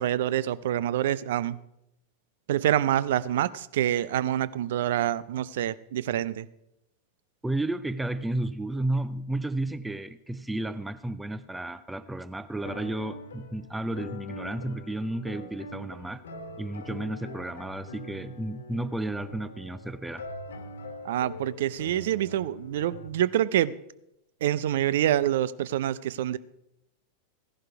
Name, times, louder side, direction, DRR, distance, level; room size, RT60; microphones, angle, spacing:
voice 1, 0.0-1.6 2.5-6.5 21.0-23.8 24.4-26.4, right 12 dB, 55° right, 18 dB, 0.5 m, -26 dB
voice 2, 7.4-16.2 16.6-20.2, right 1 dB, 5° right, 15 dB, 0.5 m, -32 dB
sound 1, 12.6-23.1, left 1 dB, 65° left, 1.5 m, -43 dB
16.0 x 11.0 x 4.7 m, 0.83 s
figure-of-eight pair, 90°, 0 cm